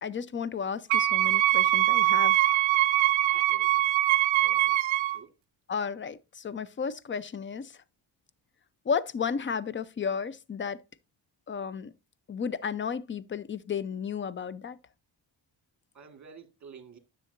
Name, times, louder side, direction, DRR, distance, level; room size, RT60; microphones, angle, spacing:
voice 1, 0.0-2.6 5.7-7.8 8.8-10.8 11.5-11.9 12.3-14.8, left 6 dB, 25° left, 0.5 m, -33 dB
Wind instrument woodwind instrument, 0.9-5.2, right 15 dB, 85° right, 0.6 m, -23 dB
voice 2, 3.3-3.7 4.3-4.7 5.1-5.3 15.9-17.0, right 6 dB, 40° right, 1.7 m, -50 dB
10.0 x 7.0 x 2.5 m
cardioid pair, 105°, 45 cm